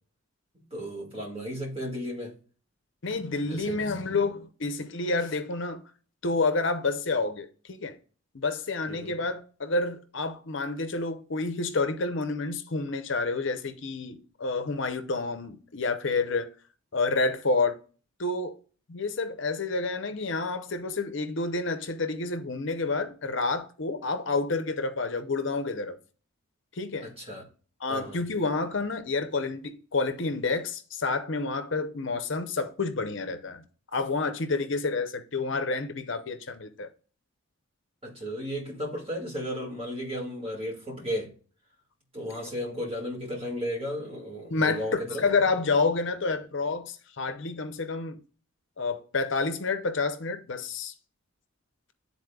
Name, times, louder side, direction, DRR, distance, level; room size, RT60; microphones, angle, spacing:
voice 1, 0.7-2.3 3.5-3.8 8.9-9.1 27.0-27.5 27.9-28.2 38.0-41.3 42.1-45.2, equal, 25° right, 1.9 m, -34 dB
voice 2, 3.0-5.8 6.2-8.0 8.3-16.5 16.9-17.8 18.2-18.6 18.9-26.0 26.7-27.1 27.8-33.6 33.9-36.9 44.5-48.2 48.8-50.9, left 3 dB, 60° left, 0.7 m, -29 dB
11.0 x 4.2 x 2.3 m
head